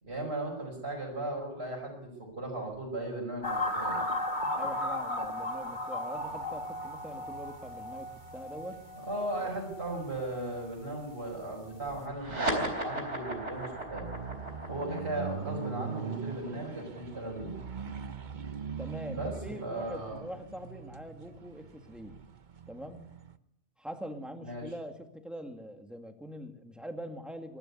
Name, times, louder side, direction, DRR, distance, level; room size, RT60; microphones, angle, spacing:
voice 1, 0.0-4.0 9.0-14.1 14.7-17.5 19.1-19.3 19.6-20.2 24.4-24.7, right 1 dB, 65° right, -3 dB, 5.4 m, -37 dB
sound 1, 3.4-10.7 10.9-11.3, left 1 dB, 45° left, 2.6 m, -36 dB
voice 2, 4.6-8.8 9.4-9.5 18.8-22.2 22.7-23.0 23.8-27.6, equal, ahead, 5 dB, 2.1 m, -43 dB
sound 2, 6.2-23.4, right 6 dB, 45° right, 1.0 m, -43 dB
sound 3, 12.1-19.0, right 1 dB, 90° right, 4.3 m, -37 dB
23.5 x 12.0 x 9.5 m, 0.80 s
omnidirectional pair, 1.2 m